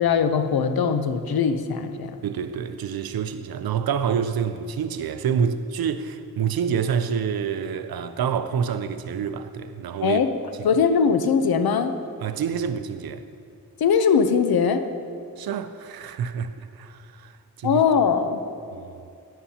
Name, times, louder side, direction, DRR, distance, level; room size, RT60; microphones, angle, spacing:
voice 1, 0.0-2.1 10.0-10.3 10.6-11.9 13.8-14.8 17.6-18.4, left 6 dB, 85° left, 0.7 m, -21 dB
voice 2, 2.2-10.2 10.6-10.7 12.2-13.2 15.4-17.8 18.7-19.0, right 7 dB, 85° right, 0.6 m, -27 dB
12.5 x 10.0 x 2.8 m
wide cardioid pair, 80°, 36 cm